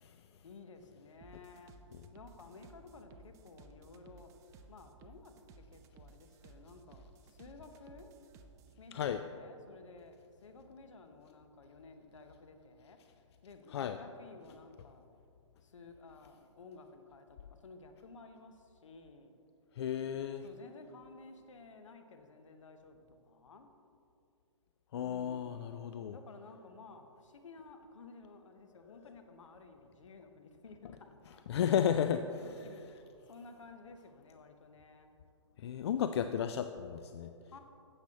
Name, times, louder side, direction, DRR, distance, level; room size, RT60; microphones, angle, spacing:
voice 1, 0.4-1.7 2.1-4.3 4.7-8.1 8.8-13.0 13.4-15.1 15.6-19.3 20.4-23.7 25.0-25.7 26.1-31.4 32.4-35.1 37.5-37.6, left 4 dB, 75° left, 7 dB, 1.0 m, -54 dB
sound 1, 1.2-8.8, right 4 dB, 20° right, 0.4 m, -58 dB
voice 2, 8.9-9.2 13.7-14.0 19.8-20.4 24.9-26.2 31.5-32.7 35.6-37.3, left 9 dB, 60° left, 8 dB, 0.4 m, -33 dB
12.0 x 8.1 x 2.9 m, 2.5 s
hypercardioid pair, 135°, 16 cm